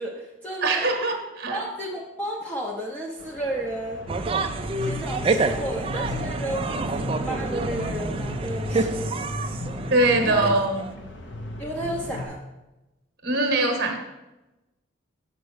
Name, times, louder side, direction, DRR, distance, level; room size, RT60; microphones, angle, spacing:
voice 1, 0.0-0.9 1.5-4.1 4.8-9.1 10.2-10.5 11.6-12.4, right 1 dB, 5° left, -2 dB, 0.6 m, -32 dB
voice 2, 0.6-1.6 9.9-10.9 13.2-14.0, right 2 dB, 50° right, 4 dB, 1.0 m, -22 dB
sound 1, 3.2-12.3, left 2 dB, 60° left, 0.8 m, -35 dB
sound 2, 4.1-10.9, right 3 dB, 25° right, 0.3 m, -28 dB
6.7 x 4.3 x 6.3 m, 1.0 s
head